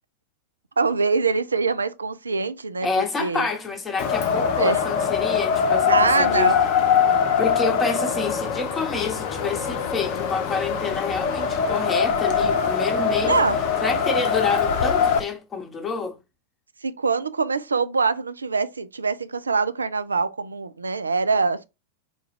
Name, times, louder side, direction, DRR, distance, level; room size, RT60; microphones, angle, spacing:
voice 1, 0.8-3.5 4.6-4.8 5.9-6.6 13.2-13.6 16.8-21.6, right 4 dB, 75° right, 0.4 m, -24 dB
voice 2, 2.8-6.5 7.4-13.4 13.8-16.2, left 4 dB, 20° left, 0.9 m, -28 dB
Wind, 4.0-15.2, left 7 dB, 45° left, 0.7 m, -22 dB
3.9 x 2.3 x 3.2 m
figure-of-eight pair, 90°, 0 cm